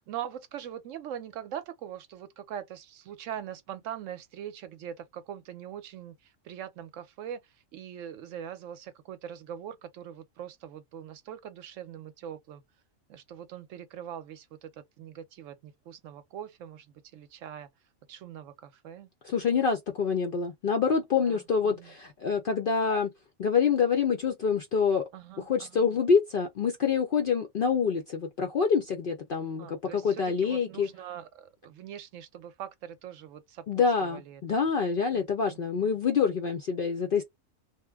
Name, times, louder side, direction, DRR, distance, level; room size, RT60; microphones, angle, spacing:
voice 1, 0.1-12.6 13.1-17.7 18.1-19.1 21.2-21.9 25.1-25.9 29.6-33.7 34.0-34.4 35.1-35.2 35.5-35.9, right 9 dB, 75° right, 0.9 m, -42 dB
voice 2, 19.2-23.1 23.4-25.0 25.5-30.9 33.7-37.2, left 6 dB, 65° left, 0.5 m, -26 dB
2.8 x 2.0 x 3.3 m
omnidirectional pair, 1.4 m